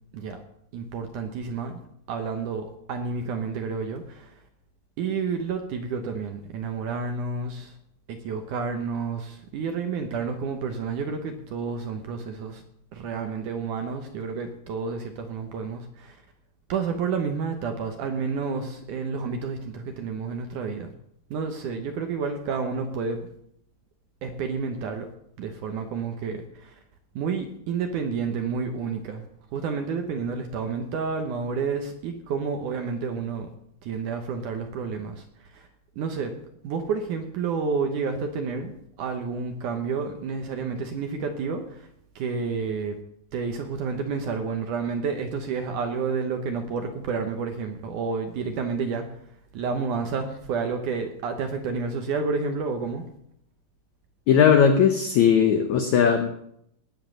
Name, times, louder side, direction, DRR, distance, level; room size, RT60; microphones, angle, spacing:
voice 1, 0.7-1.8 2.1-4.3 5.0-7.7 8.1-12.6 12.9-16.2 16.7-20.9 21.3-23.3 24.2-25.1 25.4-26.8 27.2-29.2 29.5-33.5 33.8-35.2 35.5-35.7 36.0-36.3 36.6-41.9 42.2-43.0 43.3-49.1 49.5-53.1, right 5 dB, 70° right, 5 dB, 2.0 m, -30 dB
voice 2, 54.3-56.3, left 7 dB, 80° left, 6 dB, 1.6 m, -18 dB
18.5 x 7.4 x 6.3 m, 0.73 s
omnidirectional pair, 4.6 m